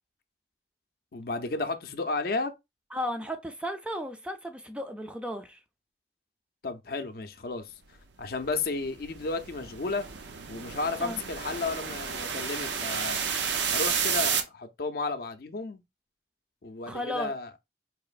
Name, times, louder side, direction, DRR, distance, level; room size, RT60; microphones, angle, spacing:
voice 1, 1.1-2.5 6.6-7.8 8.2-10.0 10.5-13.2 13.7-15.8 16.6-17.5, left 3 dB, 60° left, 0.5 m, -33 dB
voice 2, 2.9-5.6 11.0-11.2 16.8-17.3, equal, 5° right, 0.4 m, -34 dB
sound 1, 8.4-14.4, right 6 dB, 90° right, 0.7 m, -31 dB
4.8 x 2.9 x 2.4 m
head